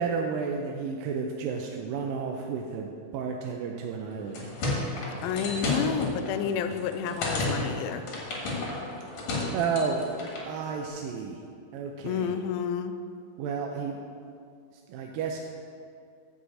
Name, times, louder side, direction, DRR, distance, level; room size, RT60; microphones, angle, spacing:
voice 1, 0.0-4.5 9.5-10.1 10.5-11.4 11.7-12.3 13.4-14.0 14.9-15.4, right 5 dB, 80° right, 2 dB, 2.2 m, -31 dB
sound 1, 4.1-10.5, left 2 dB, 50° left, 2.7 m, -32 dB
voice 2, 5.2-8.1 12.0-13.0, left 7 dB, 80° left, 8 dB, 2.1 m, -30 dB
9.6 x 5.7 x 7.6 m, 2.3 s
omnidirectional pair, 4.4 m